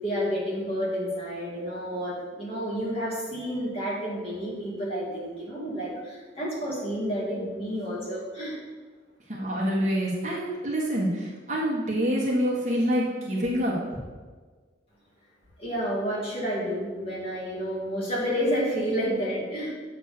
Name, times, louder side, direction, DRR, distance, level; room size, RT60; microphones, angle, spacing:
voice 1, 0.0-8.6 15.6-19.7, equal, 30° left, -6 dB, 2.2 m, -30 dB
voice 2, 9.3-14.0, equal, 40° right, -4 dB, 1.4 m, -26 dB
8.0 x 3.7 x 6.7 m, 1.4 s
head